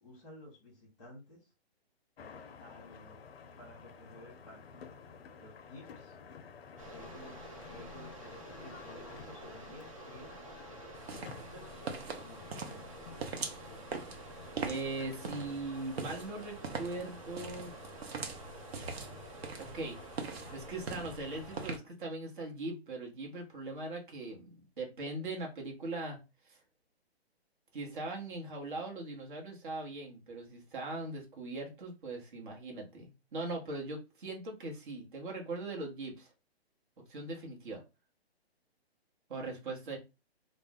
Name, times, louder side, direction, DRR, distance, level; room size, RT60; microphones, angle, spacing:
voice 1, 0.0-1.5 2.6-3.2 3.6-4.8 5.3-6.2 6.8-10.5 11.1-11.8 12.2-13.1, left 1 dB, 5° left, -2 dB, 0.8 m, -54 dB
sound 1, 2.2-21.8, left 5 dB, 70° left, 0.5 m, -52 dB
sound 2, 6.8-21.8, right 2 dB, 35° right, 0.4 m, -50 dB
sound 3, 11.0-21.8, right 4 dB, 70° right, 0.7 m, -43 dB
voice 2, 14.6-17.8 18.7-19.2 19.6-20.0 20.5-24.5 24.8-26.2 26.4-26.6 27.7-36.3 37.1-37.8 39.3-40.0, right 2 dB, 50° right, 0 dB, 1.0 m, -40 dB
2.4 x 2.0 x 3.5 m, 0.27 s
hypercardioid pair, 160°, 32 cm